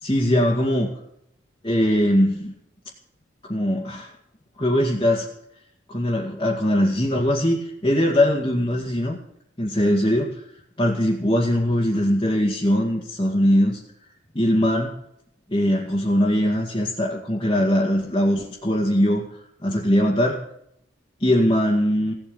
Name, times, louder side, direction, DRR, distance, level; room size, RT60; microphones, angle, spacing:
voice 1, 0.0-0.9 1.6-2.5 3.5-4.1 4.6-5.3 5.9-9.2 9.6-10.5 10.8-13.8 14.3-15.0 15.5-19.2 19.6-20.4 21.2-22.1, equal, 25° left, -3 dB, 2.2 m, -21 dB
17.0 x 8.8 x 7.9 m, 0.72 s
head